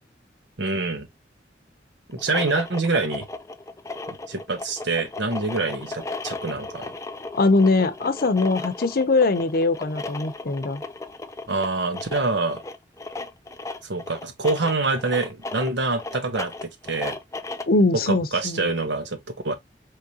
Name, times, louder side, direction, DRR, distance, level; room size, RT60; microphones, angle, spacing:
voice 1, 0.6-1.1 2.1-3.3 4.1-6.9 11.5-12.6 13.8-17.2 18.1-19.6, right 3 dB, 90° right, 1.1 m, -26 dB
sound 1, 2.1-17.8, left 3 dB, 20° left, 0.5 m, -35 dB
voice 2, 7.4-10.8 17.7-18.7, left 3 dB, 55° left, 0.6 m, -21 dB
4.8 x 3.3 x 2.8 m
head